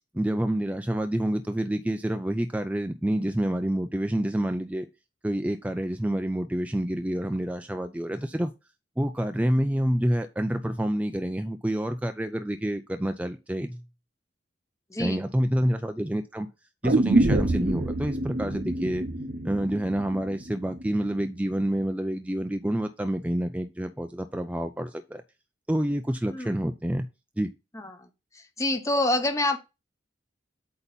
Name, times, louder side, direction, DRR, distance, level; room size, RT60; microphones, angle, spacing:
voice 1, 0.1-4.9 5.2-8.5 9.0-13.8 15.0-16.5 16.8-19.0 19.4-25.2 25.7-27.1 27.4-27.5, right 1 dB, 5° right, 0.4 m, -28 dB
voice 2, 14.9-15.2 26.3-26.5 27.7-28.1 28.6-29.6, left 1 dB, 15° left, 0.7 m, -26 dB
sound 1, 16.8-20.9 21.2-21.3, right 2 dB, 50° right, 0.8 m, -26 dB
8.2 x 2.9 x 5.2 m
head